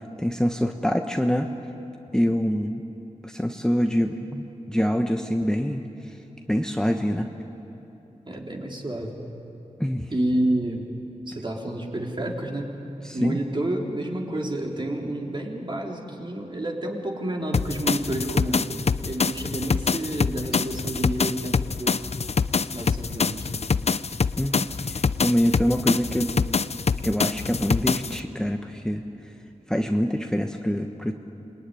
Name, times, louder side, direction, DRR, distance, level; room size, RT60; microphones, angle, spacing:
voice 1, 0.2-1.5 2.1-2.8 3.2-5.8 6.5-7.3 9.8-10.1 13.0-13.4 24.4-26.3 27.0-29.0 29.7-31.1, equal, 5° left, 4 dB, 1.2 m, -25 dB
voice 2, 8.3-9.2 10.1-10.9 11.3-12.7 13.1-18.7 19.0-22.1 22.7-23.7, right 1 dB, 35° right, 0 dB, 3.6 m, -29 dB
sound 1, 17.5-28.2, left 5 dB, 55° left, 0.6 m, -25 dB
27.0 x 22.5 x 9.9 m, 3.0 s
wide cardioid pair, 90°, 13 cm